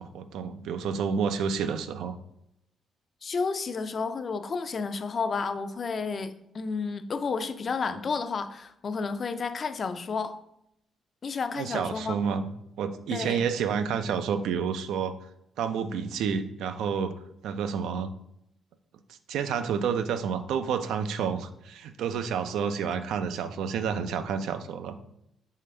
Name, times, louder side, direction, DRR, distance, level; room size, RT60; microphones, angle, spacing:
voice 1, 0.0-2.2 11.5-12.5 12.8-15.1 15.6-17.1 17.4-18.1 19.3-25.0, right 6 dB, 80° right, 10 dB, 0.3 m, -29 dB
voice 2, 3.2-10.4 11.2-12.2 13.1-13.4, left 5 dB, 45° left, 10 dB, 0.4 m, -31 dB
4.2 x 3.7 x 3.2 m, 0.78 s
cardioid pair, 90°, 0 cm